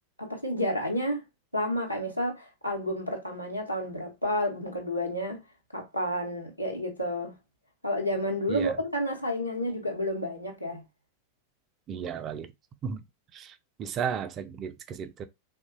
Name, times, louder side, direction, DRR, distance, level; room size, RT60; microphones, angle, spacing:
voice 1, 0.2-1.2 1.5-5.4 5.7-7.3 7.8-10.8, equal, 90° left, 0.7 m, -30 dB
voice 2, 11.9-12.5 12.8-13.0 13.3-13.5 13.8-15.3, right 7 dB, 30° right, 0.4 m, -34 dB
2.9 x 2.1 x 2.6 m
figure-of-eight pair, 90°, 0 cm